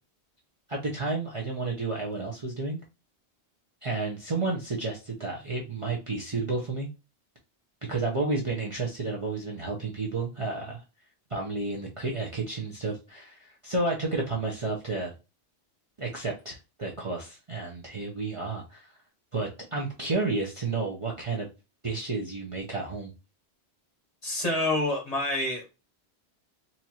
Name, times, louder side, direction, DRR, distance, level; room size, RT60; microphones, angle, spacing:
voice 1, 0.7-2.8 3.8-6.9 7.9-10.8 11.3-15.1 16.0-18.9 19.3-21.5 21.8-23.1, right 3 dB, 35° right, -3 dB, 0.6 m, -31 dB
voice 2, 24.2-25.7, left 2 dB, 35° left, 1 dB, 1.1 m, -27 dB
4.2 x 2.5 x 2.8 m, 0.28 s
omnidirectional pair, 1.1 m